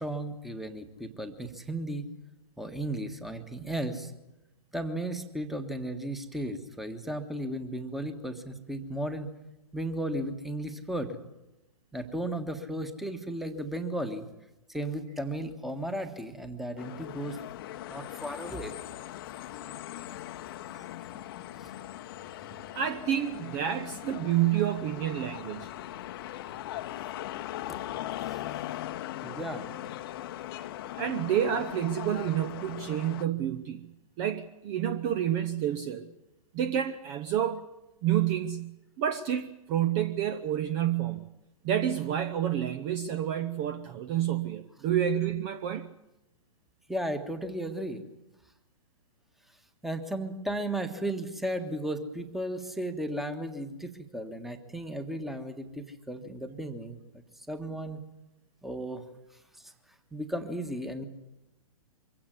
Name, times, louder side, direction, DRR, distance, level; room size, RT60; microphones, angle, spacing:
voice 1, 0.0-2.1 2.6-4.1 4.7-9.3 9.7-11.2 11.9-14.3 14.7-17.4 17.9-18.7 19.4-19.5 20.1-20.2 20.7-20.8 21.5-21.7 27.7-27.8 28.3-28.4 29.2-29.7 46.9-48.0 49.8-58.0 58.6-59.1 59.6-59.7 60.1-61.1, right 1 dB, ahead, 9 dB, 1.5 m, -35 dB
sound 1, 16.8-33.2, left 13 dB, 40° left, 1.0 m, -40 dB
voice 2, 22.7-25.7 31.0-33.9 34.2-36.1 36.5-37.6 38.0-38.7 39.0-41.3 41.6-45.9, right 10 dB, 30° right, 12 dB, 0.9 m, -29 dB
23.5 x 16.5 x 9.8 m, 0.94 s
figure-of-eight pair, 115°, 19 cm